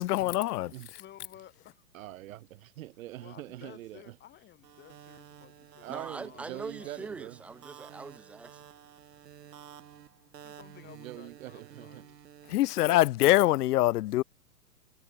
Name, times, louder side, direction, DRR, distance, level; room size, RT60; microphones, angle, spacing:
voice 1, 0.0-0.7 12.5-14.2, left 16 dB, 70° left, 0.6 m, -24 dB
voice 2, 1.0-1.8 3.2-7.1 10.4-12.2, left 12 dB, 20° left, 2.4 m, -54 dB
voice 3, 1.9-4.2 5.8-7.4 10.9-12.0, right 15 dB, 55° right, 1.1 m, -43 dB
sound 1, 4.6-12.8, right 10 dB, 75° right, 3.1 m, -52 dB
voice 4, 5.9-8.6, right 4 dB, 5° right, 0.4 m, -42 dB
hypercardioid pair, 130°, 49 cm